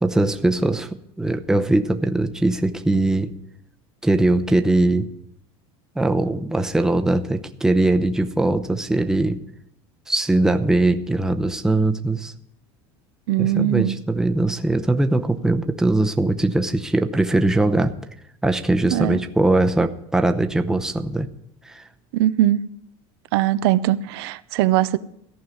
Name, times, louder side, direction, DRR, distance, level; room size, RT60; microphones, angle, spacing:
voice 1, 0.0-3.3 4.0-5.1 5.9-9.4 10.1-12.3 13.4-17.9 18.4-21.3 21.6-21.8, right 2 dB, 5° right, 0.7 m, -21 dB
voice 2, 13.3-13.9 18.9-19.2 22.1-22.6 23.3-25.0, right 13 dB, 75° right, 0.6 m, -20 dB
14.5 x 5.5 x 9.3 m
supercardioid pair, 135°, 13 cm